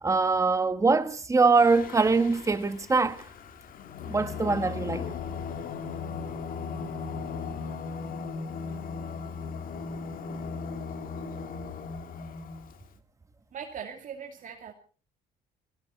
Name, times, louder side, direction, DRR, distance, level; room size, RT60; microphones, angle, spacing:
voice 1, 0.0-3.2 4.1-5.1, right 4 dB, 20° right, 1.4 m, -23 dB
Singing, 1.5-12.9, left 5 dB, 55° left, 2.0 m, -37 dB
voice 2, 13.5-14.7, right 7 dB, 50° right, 2.6 m, -40 dB
20.5 x 16.5 x 4.2 m
cardioid pair, 110°, 17 cm